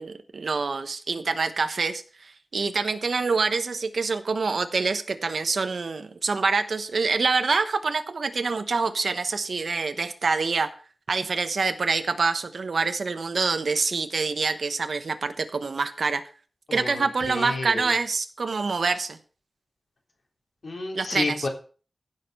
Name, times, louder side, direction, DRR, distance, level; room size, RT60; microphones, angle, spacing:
voice 1, 0.0-10.7 11.1-16.2 16.7-19.2 20.9-21.5, right 4 dB, 85° right, 8 dB, 1.1 m, -26 dB
voice 2, 16.7-17.9 20.6-21.5, left 3 dB, 80° left, 2 dB, 3.5 m, -31 dB
16.0 x 6.7 x 5.6 m, 0.39 s
wide cardioid pair, 95°, 0 cm